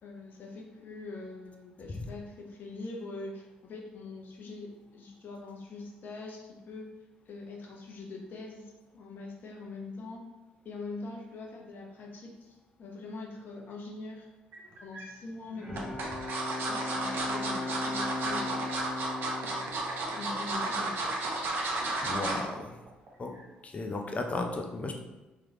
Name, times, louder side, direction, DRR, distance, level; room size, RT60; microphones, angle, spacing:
voice 1, 0.0-6.9 7.3-10.2 10.6-14.3 14.8-16.0 16.7-18.7 20.0-21.3, left 3 dB, 55° left, 0 dB, 1.0 m, -43 dB
sound 1, 14.5-15.1 15.8-22.5 22.9-23.1 23.4-23.5, right 2 dB, 65° right, 0.9 m, -33 dB
Bowed string instrument, 15.3-21.1, left 2 dB, 5° right, 1.3 m, -38 dB
voice 2, 22.0-22.7 23.2-23.3 23.6-25.0, left 2 dB, 35° left, 4 dB, 0.7 m, -34 dB
3.3 x 3.1 x 3.8 m, 1.1 s
hypercardioid pair, 60°, 4 cm